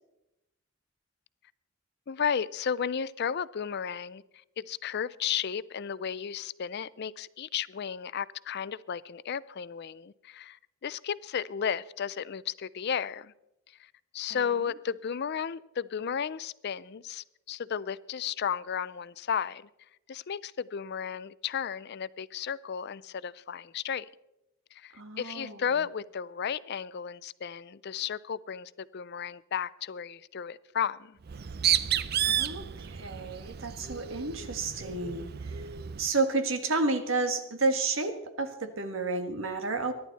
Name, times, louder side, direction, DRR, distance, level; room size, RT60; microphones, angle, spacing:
voice 1, 2.1-4.2 4.6-13.3 13.8-19.7 20.1-24.1 24.7-31.2, left 7 dB, 50° left, 0.4 m, -34 dB
voice 2, 24.9-25.6 32.2-35.6 36.0-39.9, right 3 dB, 65° right, 1.7 m, -31 dB
Bird, 31.2-36.1, right 10 dB, 50° right, 0.5 m, -31 dB
24.0 x 11.0 x 4.1 m
head